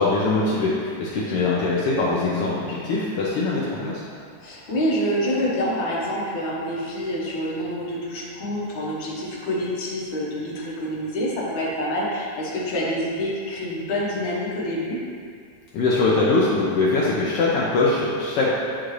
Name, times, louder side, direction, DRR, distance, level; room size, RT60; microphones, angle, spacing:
voice 1, 0.0-4.0 15.7-18.5, left 3 dB, 80° left, -6 dB, 1.3 m, -22 dB
voice 2, 4.4-15.0, equal, 55° left, -5 dB, 1.5 m, -27 dB
9.1 x 3.7 x 3.2 m, 2.2 s
omnidirectional pair, 3.3 m